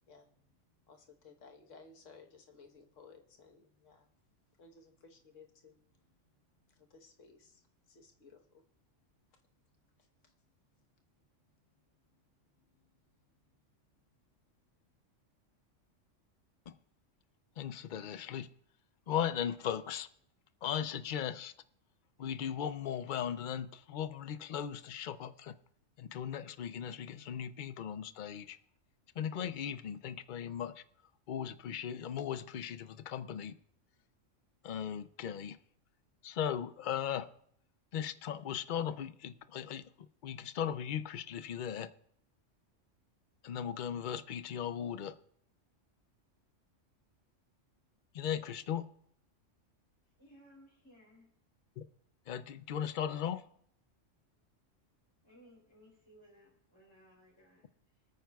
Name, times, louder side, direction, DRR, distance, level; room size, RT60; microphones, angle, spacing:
voice 1, 0.1-0.4 0.9-4.1 4.6-6.1 6.7-8.6 10.2-10.3 12.5-12.9, left 4 dB, 75° left, 1.6 m, -59 dB
voice 2, 17.6-18.5 19.1-20.1 20.6-21.5 22.2-25.5 26.0-28.6 29.2-30.8 31.3-33.5 34.6-35.6 36.2-37.3 37.9-39.9 40.2-41.9 43.4-45.1 48.1-48.8 51.8-51.9 52.3-53.4, left 9 dB, 55° left, 0.6 m, -37 dB
voice 3, 50.0-51.3 55.2-58.1, equal, 20° left, 3.2 m, -61 dB
25.0 x 9.1 x 2.3 m
omnidirectional pair, 1.3 m